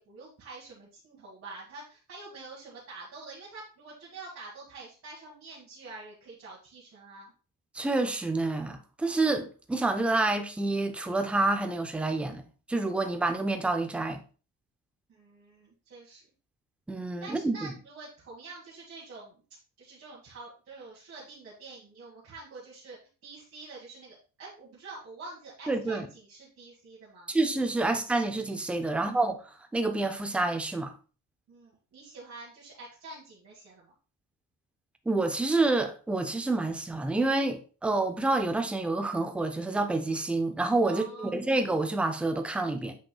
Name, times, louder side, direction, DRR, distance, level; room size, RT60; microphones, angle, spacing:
voice 1, 0.0-7.3 15.1-16.2 17.2-19.4 19.8-27.3 28.9-29.1 31.5-33.9 40.8-41.3, right 3 dB, 40° right, 1.7 m, -47 dB
voice 2, 7.7-12.4 12.7-14.2 16.9-17.7 25.7-26.1 27.3-29.4 29.7-30.9 35.1-43.0, right 2 dB, 5° right, 0.5 m, -28 dB
7.8 x 5.8 x 2.3 m
cardioid pair, 175°, 34 cm